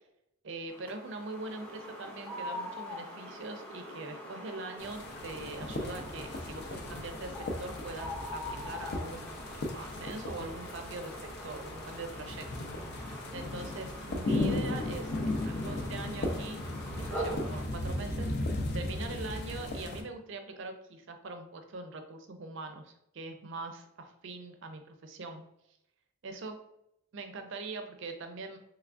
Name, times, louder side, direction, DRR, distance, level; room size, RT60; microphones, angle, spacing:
voice 1, 0.4-9.4 9.7-12.5 12.9-16.6 17.0-25.4 26.2-26.6 27.1-28.6, right 3 dB, 55° right, 6 dB, 0.5 m, -42 dB
sound 1, 0.7-17.7, equal, 10° left, 0.6 m, -43 dB
sound 2, 4.8-20.0, left 2 dB, 50° left, 0.4 m, -36 dB
3.4 x 3.1 x 2.4 m, 0.78 s
head